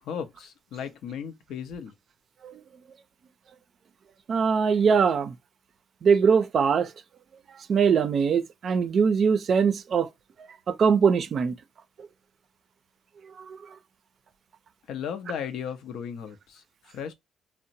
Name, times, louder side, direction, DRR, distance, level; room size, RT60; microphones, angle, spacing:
voice 1, 0.0-1.9 14.9-17.1, left 7 dB, 80° left, 0.5 m, -36 dB
voice 2, 4.3-5.3 6.0-6.9 7.7-10.1 10.7-11.6 13.4-13.6, right 6 dB, 60° right, 0.4 m, -22 dB
2.8 x 2.0 x 2.6 m
cardioid pair, 85°, 0 cm